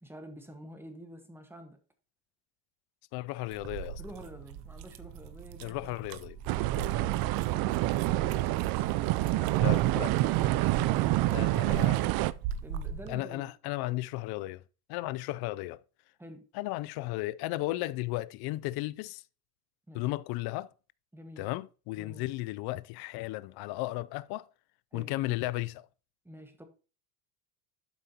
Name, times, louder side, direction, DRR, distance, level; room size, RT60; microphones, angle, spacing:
voice 1, 0.0-1.8 4.0-6.1 12.6-13.5 16.2-16.5 19.9-20.1 21.1-21.5 21.9-22.3 24.9-25.2 26.2-26.6, right 1 dB, 5° right, 1.5 m, -48 dB
voice 2, 3.1-4.0 5.6-6.4 9.6-10.1 11.3-12.2 13.1-14.6 14.9-15.8 16.5-19.2 19.9-20.7 21.4-24.5 24.9-25.9, left 18 dB, 55° left, 0.5 m, -35 dB
sound 1, 3.5-13.2, right 7 dB, 70° right, 0.9 m, -43 dB
sound 2, 6.5-12.3, right 17 dB, 50° right, 0.5 m, -27 dB
12.0 x 5.0 x 2.9 m
supercardioid pair, 100°, 46 cm